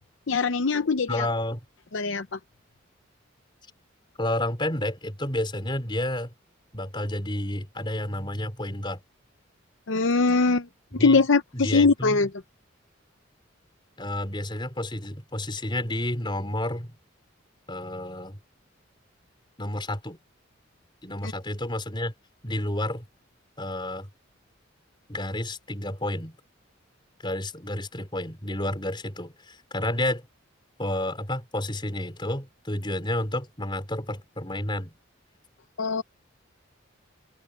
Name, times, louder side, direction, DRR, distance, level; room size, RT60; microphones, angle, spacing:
voice 1, 0.3-1.3 1.9-2.3 9.9-10.7 10.9-12.3 35.8-36.0, left 4 dB, 70° left, 0.7 m, -22 dB
voice 2, 1.1-1.6 4.2-6.3 6.7-9.0 11.0-11.2 11.5-12.3 14.0-16.9 17.7-18.4 19.6-20.2 21.0-22.1 22.4-23.0 23.6-24.1 25.1-26.4 27.2-30.2 30.8-34.9, left 1 dB, 25° left, 4.9 m, -30 dB
head